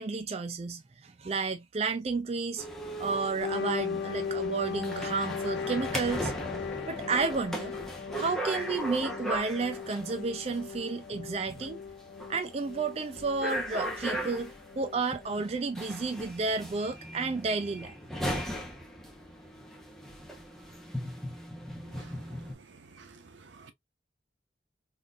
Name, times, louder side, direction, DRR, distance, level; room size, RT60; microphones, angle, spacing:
voice 1, 0.0-2.7 3.0-6.3 6.9-7.7 8.2-11.8 12.3-17.9, right 4 dB, 35° right, 0.4 m, -32 dB
sound 1, 2.6-22.5, equal, ahead, 0.7 m, -38 dB
sound 2, 3.4-15.5, left 6 dB, 75° left, 0.4 m, -38 dB
voice 2, 21.8-22.3 22.7-23.7, right 4 dB, 85° right, 0.8 m, -52 dB
3.6 x 2.6 x 2.3 m
head